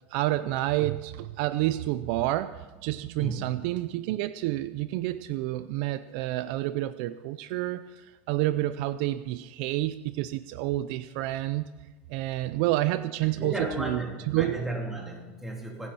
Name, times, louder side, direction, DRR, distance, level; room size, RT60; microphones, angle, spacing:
voice 1, 0.1-11.6 12.1-14.0 14.3-14.6, right 15 dB, 60° right, 13 dB, 0.5 m, -29 dB
voice 2, 3.2-3.6 13.2-15.9, right 2 dB, 5° right, -1 dB, 3.2 m, -34 dB
26.5 x 9.8 x 4.3 m, 1.2 s
supercardioid pair, 145°, 6 cm